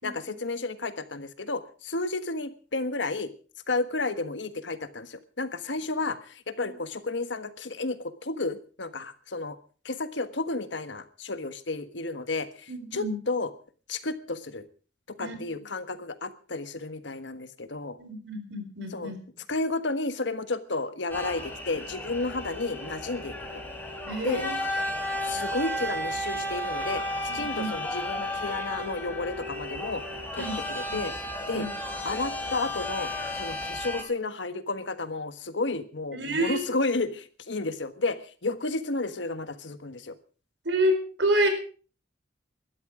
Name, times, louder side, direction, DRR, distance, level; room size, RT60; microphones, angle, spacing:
voice 1, 0.0-3.3 3.7-9.6 9.8-13.5 13.9-14.7 15.2-18.0 18.9-19.1 19.5-23.6 24.2-24.4 25.2-30.0 30.3-31.1 31.5-31.7 32.0-40.1, left 3 dB, 80° left, 11 dB, 1.4 m, -32 dB
voice 2, 12.7-13.1 15.2-15.4 18.0-19.2 24.1-24.5 27.3-27.7 28.1-28.2 30.4-30.6 30.9-31.0 31.5-31.7 36.1-36.7 40.6-41.5, right 1 dB, 65° right, 7 dB, 4.5 m, -28 dB
sound 1, 21.1-34.0, left 1 dB, 10° left, 3.6 m, -33 dB
19.0 x 13.0 x 4.9 m, 0.39 s
head